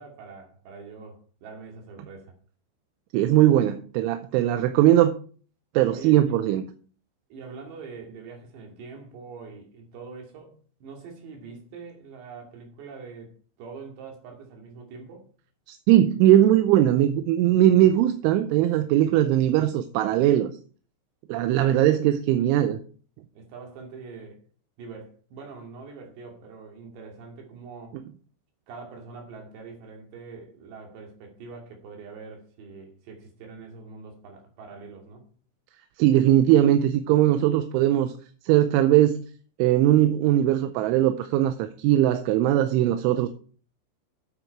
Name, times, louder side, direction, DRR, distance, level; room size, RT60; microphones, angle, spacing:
voice 1, 0.0-2.4 5.9-6.4 7.3-10.5 10.8-13.3 13.6-15.3 21.6-22.5 23.3-24.4 24.8-28.0 28.7-35.3, right 4 dB, 65° right, 4.5 m, -43 dB
voice 2, 3.1-5.2 5.7-6.6 15.7-20.6 21.3-22.8 36.0-38.1 38.4-39.2 39.6-43.3, right 12 dB, 85° right, 3.1 m, -20 dB
9.0 x 8.1 x 4.6 m
omnidirectional pair, 5.5 m